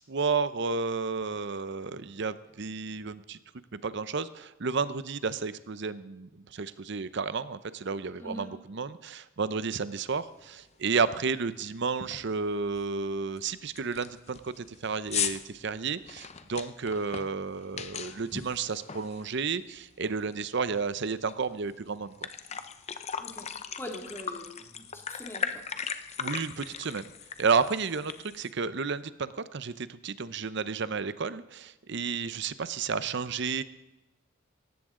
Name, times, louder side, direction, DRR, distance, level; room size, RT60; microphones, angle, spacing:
voice 1, 0.0-3.4 3.8-22.1 26.2-27.0 27.4-33.6, right 5 dB, 55° right, 14 dB, 0.7 m, -32 dB
voice 2, 8.2-8.5 23.2-23.5 23.8-25.6, equal, 10° left, 1 dB, 2.3 m, -42 dB
sound 1, 10.4-10.5 10.9-11.2 11.5-11.6 12.0-12.3 12.8-12.9 13.4-13.5 13.8-19.7 20.0-21.3 21.7-21.8 22.1-28.5, left 7 dB, 30° left, 0.7 m, -38 dB
18.0 x 15.0 x 3.8 m, 1.0 s
head